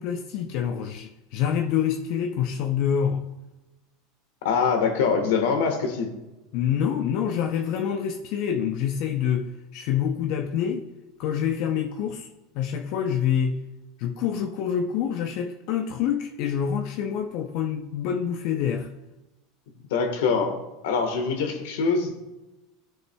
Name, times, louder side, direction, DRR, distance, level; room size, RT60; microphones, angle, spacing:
voice 1, 0.0-3.2 6.5-10.9 11.2-12.3 12.6-13.6 14.0-18.9, left 8 dB, 60° left, 0.6 m, -26 dB
voice 2, 4.4-6.1 19.9-20.6 20.8-22.2, left 5 dB, 80° left, 1.4 m, -24 dB
13.5 x 6.4 x 2.3 m
supercardioid pair, 105°, 0 cm